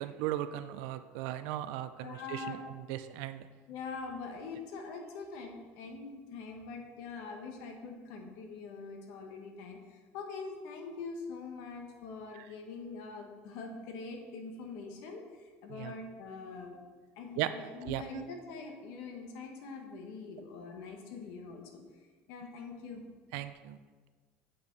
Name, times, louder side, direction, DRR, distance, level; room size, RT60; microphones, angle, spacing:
voice 1, 0.0-2.6 2.9-3.5 12.4-12.5 15.8-15.9 17.4-17.5 17.8-18.3 23.3-23.8, right 13 dB, 80° right, 11 dB, 0.4 m, -37 dB
voice 2, 2.0-2.6 3.7-16.8 17.2-21.8 22.3-23.0, left 4 dB, 70° left, 3 dB, 1.3 m, -44 dB
8.4 x 5.6 x 4.0 m, 1.4 s
cardioid pair, 170°, 5 cm